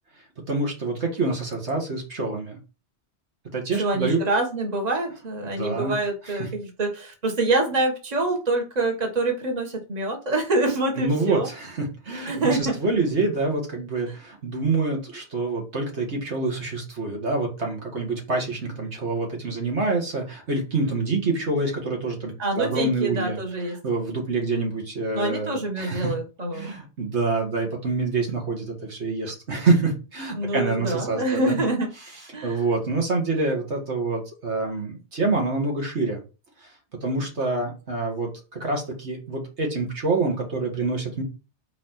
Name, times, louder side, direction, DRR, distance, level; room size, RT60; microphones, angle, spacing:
voice 1, 0.5-2.6 3.5-4.2 5.4-5.9 11.0-23.4 23.8-26.1 26.5-31.6 32.4-36.2 37.0-41.2, right 3 dB, 80° right, 2.2 m, -26 dB
voice 2, 3.7-11.5 12.3-12.8 14.1-14.2 22.4-23.8 25.1-26.8 30.3-31.9 32.3-32.6, right 2 dB, 40° right, 1.6 m, -26 dB
4.9 x 4.3 x 5.9 m
omnidirectional pair, 1.1 m